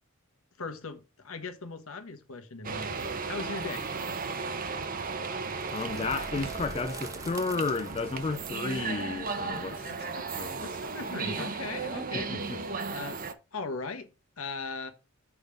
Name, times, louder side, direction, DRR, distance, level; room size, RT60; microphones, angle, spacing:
voice 1, 0.6-3.0 3.3-3.8 9.9-10.3 10.6-12.3 12.9-13.2 13.5-14.1 14.4-14.9, left 3 dB, 85° left, 1.3 m, -38 dB
sound 1, 2.6-13.3, right 4 dB, 40° right, 0.8 m, -35 dB
sound 2, 5.5-11.3, right 2 dB, 15° right, 1.0 m, -46 dB
voice 2, 5.7-10.7 11.4-11.5 12.1-12.6, left 4 dB, 30° left, 0.4 m, -33 dB
6.2 x 5.2 x 5.0 m
head